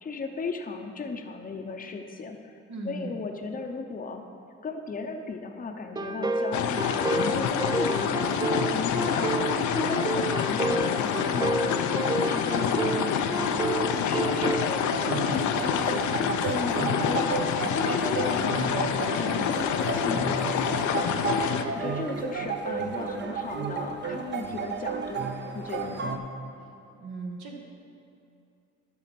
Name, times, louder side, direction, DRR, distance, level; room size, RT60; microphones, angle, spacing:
voice 1, 0.0-2.5 2.9-4.2 4.6-8.3 8.7-12.0 12.2-16.2 16.5-20.4 21.7-26.2, left 4 dB, 30° left, 4 dB, 0.7 m, -36 dB
voice 2, 2.7-3.1 26.9-27.6, right 2 dB, 75° right, 1 dB, 1.5 m, -37 dB
sound 1, 6.0-14.7, right 3 dB, 15° right, 0.3 m, -30 dB
sound 2, 6.5-21.6, left 8 dB, 75° left, 0.6 m, -27 dB
sound 3, 14.9-26.2, right 5 dB, 35° right, 0.7 m, -32 dB
11.5 x 4.1 x 5.9 m, 2.6 s
cardioid pair, 90°, 30 cm